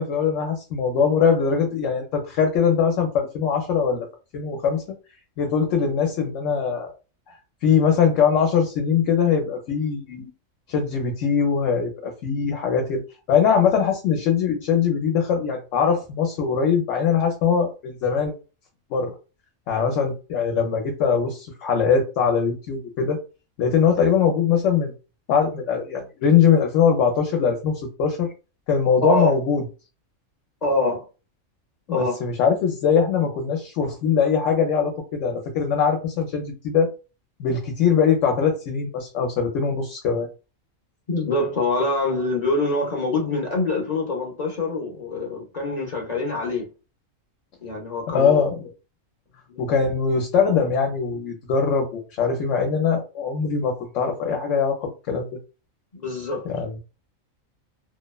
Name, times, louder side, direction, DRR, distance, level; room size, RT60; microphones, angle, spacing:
voice 1, 0.0-4.1 4.3-4.8 5.4-6.9 7.6-10.3 10.7-13.0 13.3-18.3 18.9-19.1 19.7-23.2 23.6-24.9 25.3-28.3 28.7-29.6 31.9-36.9 37.4-40.3 48.1-48.7 49.6-55.3 56.4-56.8, left 6 dB, 70° left, 0.9 m, -21 dB
voice 2, 30.6-31.0 31.9-32.2 41.1-46.7 47.6-48.4 49.5-49.6 55.9-56.5, left 2 dB, 45° left, 0.5 m, -25 dB
2.7 x 2.0 x 2.2 m
omnidirectional pair, 1.4 m